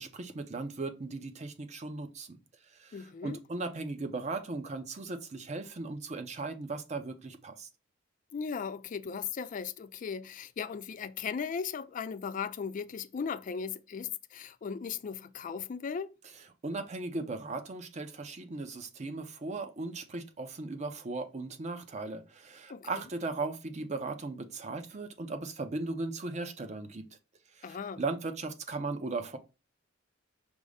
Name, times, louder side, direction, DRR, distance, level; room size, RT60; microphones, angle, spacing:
voice 1, 0.0-2.4 2.8-7.7 16.6-27.0 27.6-29.4, right 3 dB, 35° right, 0.6 m, -37 dB
voice 2, 2.9-3.4 8.3-16.1 22.7-22.9 27.6-28.0, left 6 dB, 45° left, 0.3 m, -37 dB
5.2 x 2.0 x 4.8 m
head